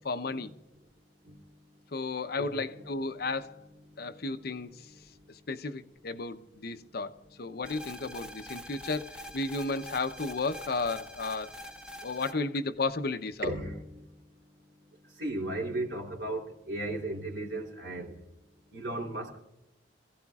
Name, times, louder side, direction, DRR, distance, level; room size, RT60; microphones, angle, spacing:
voice 1, 0.0-0.5 1.9-3.6 4.0-4.9 5.5-11.5 12.0-13.5, left 3 dB, 60° left, 0.7 m, -33 dB
voice 2, 2.4-2.8 4.1-4.2 12.3-12.4 13.4-14.1 15.2-18.2 18.7-19.4, right 2 dB, 75° right, 3.1 m, -36 dB
sound 1, 7.6-12.3, equal, 5° right, 1.3 m, -45 dB
26.5 x 15.5 x 2.4 m
head